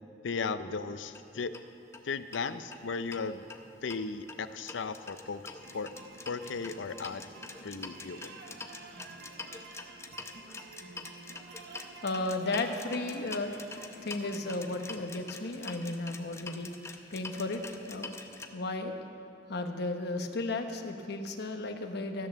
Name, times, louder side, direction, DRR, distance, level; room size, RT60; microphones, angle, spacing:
voice 1, 0.2-1.5 2.0-3.5 3.8-5.9 6.2-7.3 7.6-8.3, left 4 dB, 85° left, 12 dB, 0.5 m, -36 dB
sound 1, 1.1-1.2 1.5-1.6 1.9-2.0 2.3-3.2 3.5-18.5, left 3 dB, 15° left, 0.7 m, -45 dB
sound 2, 5.6-15.0, right 3 dB, 60° right, 1.0 m, -50 dB
voice 2, 12.0-13.5 14.0-16.7 17.1-18.2 18.5-19.0 19.5-22.3, left 2 dB, 65° left, 5 dB, 1.0 m, -34 dB
13.5 x 8.8 x 6.9 m, 2.7 s
head